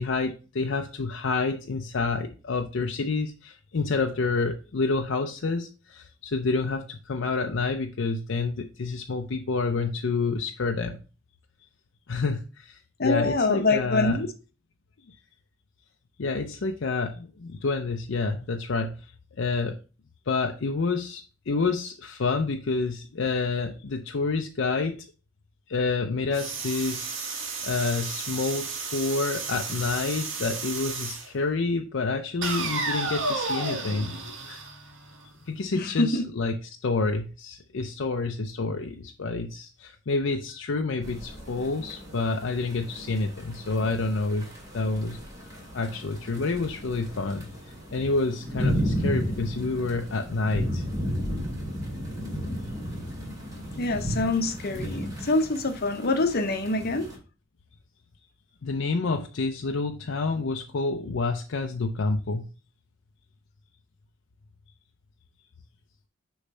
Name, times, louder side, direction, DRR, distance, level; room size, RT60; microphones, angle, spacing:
voice 1, 0.0-11.0 12.1-14.2 16.2-19.1 19.4-19.8 20.3-25.1 25.7-34.1 34.5-34.6 35.5-36.6 36.8-44.5 44.7-45.2 45.7-47.5 47.9-50.8 58.6-62.4, left 3 dB, 65° left, 0.6 m, -28 dB
voice 2, 13.0-14.3 35.7-36.3 53.8-57.1, left 2 dB, 50° left, 0.9 m, -25 dB
sound 1, 26.3-31.3 32.4-35.3, right 3 dB, 65° right, 1.4 m, -32 dB
sound 2, 41.0-57.2, equal, 20° right, 2.4 m, -34 dB
6.5 x 3.2 x 5.4 m
head